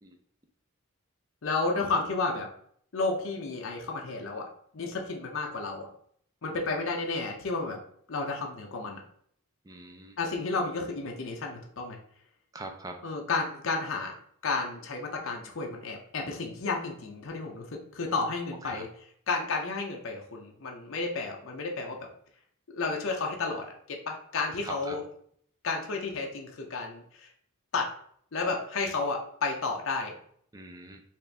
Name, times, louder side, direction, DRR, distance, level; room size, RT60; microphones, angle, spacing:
voice 1, 1.4-2.5 2.9-4.5 4.7-5.9 6.4-7.8 8.1-9.0 10.2-12.0 13.0-14.1 14.4-18.9 19.3-22.0 22.7-25.0 25.6-27.3 27.7-27.9 28.3-30.1, left 3 dB, 65° left, 1 dB, 0.6 m, -32 dB
voice 2, 9.6-10.2 12.5-12.9 18.6-18.8 24.6-25.0 30.5-31.0, right 2 dB, 15° right, 4 dB, 0.4 m, -42 dB
4.3 x 2.5 x 3.3 m, 0.64 s
head